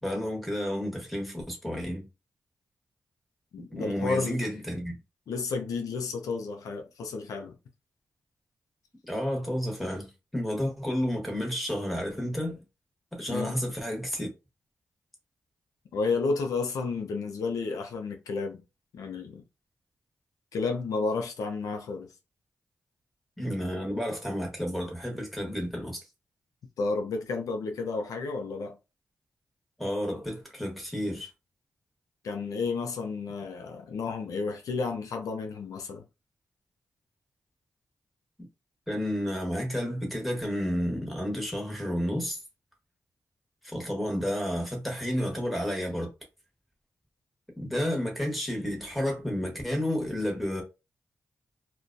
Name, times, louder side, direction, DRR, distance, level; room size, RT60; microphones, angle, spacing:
voice 1, 0.0-2.0 3.7-5.0 9.1-12.6 13.1-14.3 23.4-26.0 29.8-31.3 38.9-42.4 43.6-46.1 47.6-50.6, equal, ahead, 1.2 m, -31 dB
voice 2, 3.5-4.4 5.3-7.5 13.3-13.6 15.9-18.6 18.9-19.4 20.5-22.1 26.8-28.8 32.2-36.0, left 4 dB, 90° left, 0.5 m, -31 dB
2.2 x 2.2 x 2.5 m
cardioid pair, 50°, 6 cm